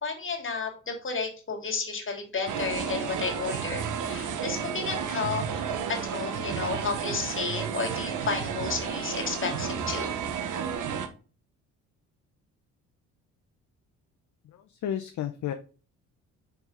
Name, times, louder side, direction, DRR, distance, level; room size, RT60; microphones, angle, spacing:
voice 1, 0.0-5.4 5.9-10.1, left 4 dB, 35° left, 2 dB, 2.7 m, -32 dB
sound 1, 2.5-11.1, right 7 dB, 60° right, 1.2 m, -32 dB
voice 2, 14.4-15.5, left 10 dB, 55° left, 7 dB, 0.8 m, -33 dB
5.6 x 4.6 x 3.9 m, 0.35 s
supercardioid pair, 65°, 34 cm